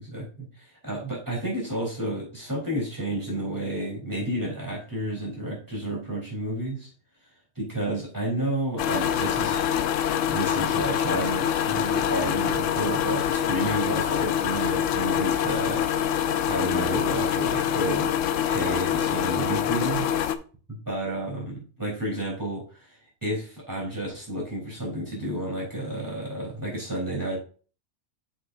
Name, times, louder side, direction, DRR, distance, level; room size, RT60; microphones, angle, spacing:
voice 1, 0.1-6.9 7.6-18.1 18.4-20.1 20.7-27.4, right 1 dB, 15° right, -4 dB, 3.9 m, -31 dB
sound 1, 8.8-20.3, left 9 dB, 75° left, 0.9 m, -25 dB
8.0 x 6.4 x 2.6 m, 0.38 s
omnidirectional pair, 1.4 m